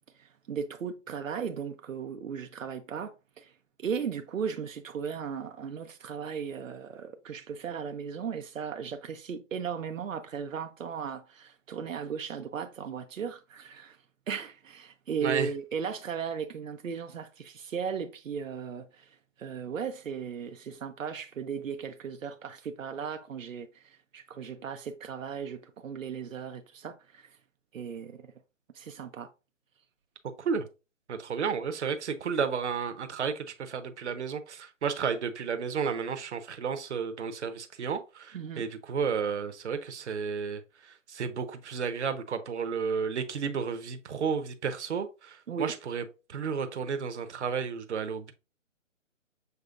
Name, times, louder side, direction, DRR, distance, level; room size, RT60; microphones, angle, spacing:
voice 1, 0.2-3.5 3.8-14.0 14.3-27.4 27.7-28.2 28.7-29.3 38.3-38.7 45.5-45.8, right 6 dB, 90° right, 0.6 m, -36 dB
voice 2, 31.1-46.0 46.3-48.3, right 6 dB, 60° right, 0.9 m, -32 dB
6.7 x 3.3 x 2.4 m
figure-of-eight pair, 150°, 38 cm